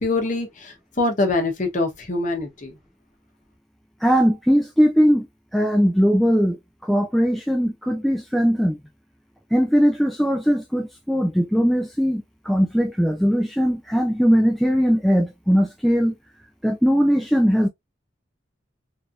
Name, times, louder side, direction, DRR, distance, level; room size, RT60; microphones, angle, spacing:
voice 1, 0.0-2.7, left 2 dB, 40° left, 0.9 m, -24 dB
voice 2, 4.0-5.3 5.5-6.6 6.9-8.8 9.5-16.1 16.6-17.7, equal, ahead, 0.3 m, -19 dB
3.2 x 2.7 x 2.4 m
head